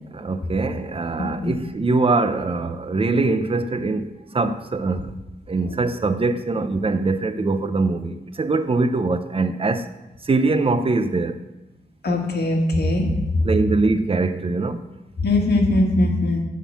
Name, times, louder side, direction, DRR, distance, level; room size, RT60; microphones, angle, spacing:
voice 1, 0.1-5.1 5.5-9.9 10.2-11.4 13.4-14.8, right 3 dB, 30° right, 0.6 m, -22 dB
voice 2, 12.0-13.1 15.2-16.4, left 2 dB, 70° left, 1.6 m, -20 dB
11.0 x 3.8 x 7.4 m
wide cardioid pair, 90°, 18 cm